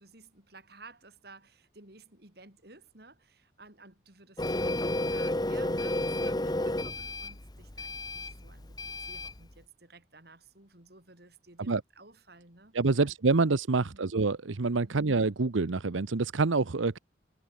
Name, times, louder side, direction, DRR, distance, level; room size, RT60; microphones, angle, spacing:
voice 1, 0.0-4.7 5.1-13.1 13.9-14.1 14.8-15.1, right 3 dB, 55° right, 3.8 m, -54 dB
Printer, 4.4-9.4, left 1 dB, 20° left, 1.1 m, -32 dB
voice 2, 12.7-17.0, right 3 dB, 90° right, 0.8 m, -27 dB
head